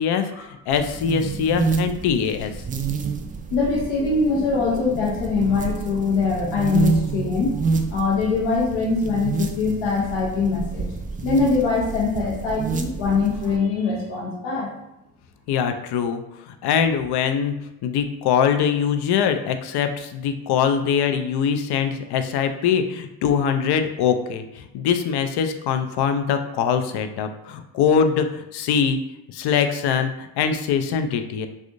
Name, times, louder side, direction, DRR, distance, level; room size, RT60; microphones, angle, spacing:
voice 1, 0.0-2.5 15.5-17.6 17.8-29.0 29.3-31.5, left 7 dB, 60° left, 8 dB, 0.5 m, -23 dB
sound 1, 0.7-13.6, right 5 dB, 20° right, 0.3 m, -28 dB
voice 2, 3.5-7.5 7.9-10.9 11.2-14.7, left 4 dB, 75° left, -3 dB, 1.0 m, -22 dB
3.4 x 2.5 x 2.6 m, 0.89 s
hypercardioid pair, 55°, 46 cm